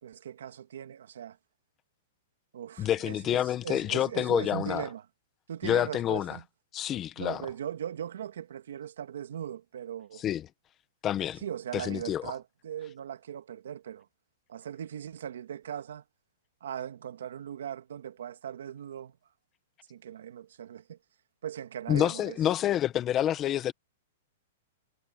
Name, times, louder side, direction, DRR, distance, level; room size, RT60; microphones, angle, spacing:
voice 1, 0.0-1.4 2.5-5.0 5.5-6.4 7.2-10.2 11.4-14.1 14.5-16.0 16.6-19.1 19.9-21.0 21.4-22.4, right 9 dB, 80° right, 2.2 m, -39 dB
voice 2, 2.8-4.9 5.6-6.4 6.7-7.4 10.2-10.5 11.0-11.4 11.7-12.3 21.9-23.7, left 11 dB, 20° left, 1.2 m, -28 dB
hypercardioid pair, 165°, 0 cm